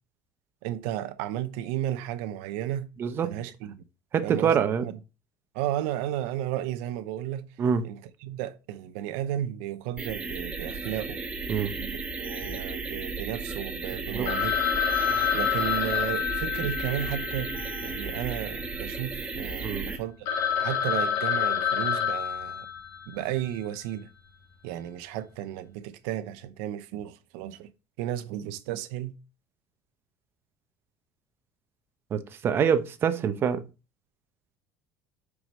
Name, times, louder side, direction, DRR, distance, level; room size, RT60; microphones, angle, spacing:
voice 1, 0.6-2.9 3.2-3.8 4.2-4.9 5.5-7.5 7.8-11.2 11.8-14.8 15.3-17.5 17.8-20.2 20.6-22.7 23.1-24.1 24.6-27.7 28.0-29.2, right 12 dB, 85° right, 0.8 m, -33 dB
voice 2, 3.0-3.3 4.1-4.9 7.6-7.8 11.5-11.7 14.1-14.3 19.6-19.9 32.1-33.6, right 7 dB, 35° right, 0.9 m, -25 dB
sound 1, 10.0-20.0, right 4 dB, 20° right, 1.3 m, -35 dB
Telephone, 14.3-18.6 18.9-19.0 19.5-19.6 20.0-20.1 20.3-23.2, left 8 dB, 65° left, 1.5 m, -28 dB
5.3 x 4.9 x 6.1 m
cardioid pair, 140°, 6 cm